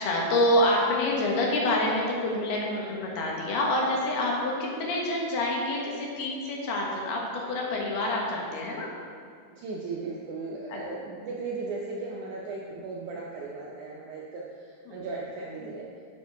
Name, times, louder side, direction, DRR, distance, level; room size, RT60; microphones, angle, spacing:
voice 1, 0.0-8.9 10.7-10.8 14.9-15.0 15.6-15.7, left 1 dB, 85° left, -2 dB, 3.3 m, -27 dB
voice 2, 2.7-3.0 9.5-15.9, right 3 dB, 80° right, -3 dB, 1.8 m, -37 dB
10.5 x 6.7 x 3.4 m, 2.2 s
omnidirectional pair, 4.4 m